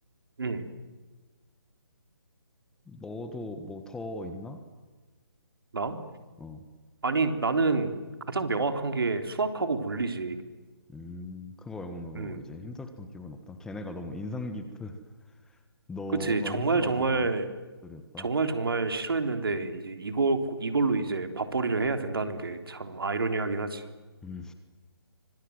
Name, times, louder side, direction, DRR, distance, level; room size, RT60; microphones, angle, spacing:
voice 1, 0.4-0.7 5.7-6.0 7.0-8.0 8.3-10.4 12.1-12.4 16.1-17.5 18.2-23.8, right 3 dB, 65° right, 7 dB, 3.5 m, -28 dB
voice 2, 2.9-4.6 6.4-6.6 10.9-15.0 15.4-15.6 15.9-17.3 17.8-18.3 24.2-24.5, left 2 dB, 5° left, 8 dB, 1.5 m, -39 dB
26.5 x 25.5 x 8.0 m, 1.3 s
figure-of-eight pair, 145°, 13 cm